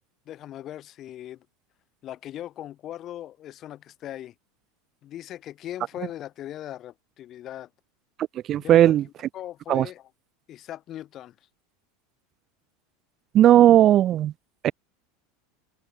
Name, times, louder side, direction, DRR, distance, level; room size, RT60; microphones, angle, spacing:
voice 1, 0.2-1.4 2.0-4.3 5.0-7.7 8.6-8.9 9.3-10.1 10.5-11.3, left 12 dB, 40° left, 5.1 m, -39 dB
voice 2, 8.5-9.0 9.7-9.9 13.3-14.3 14.6-14.7, right 12 dB, 40° right, 0.3 m, -16 dB
supercardioid pair, 120°, 0 cm